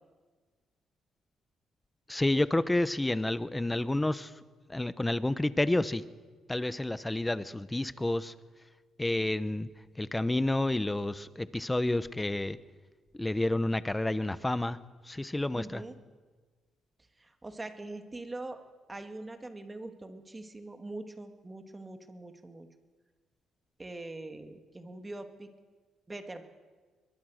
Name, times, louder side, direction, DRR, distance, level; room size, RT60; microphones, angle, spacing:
voice 1, 2.1-4.3 4.7-6.0 6.5-8.3 9.0-9.7 10.0-12.6 13.2-14.8 15.1-15.8, left 1 dB, 10° left, 15 dB, 1.0 m, -29 dB
voice 2, 15.5-16.0 17.2-18.6 18.9-22.7 23.8-25.5 26.1-26.4, right 2 dB, 20° right, 7 dB, 2.3 m, -43 dB
22.0 x 22.0 x 6.5 m, 1.4 s
cardioid pair, 90°, 0 cm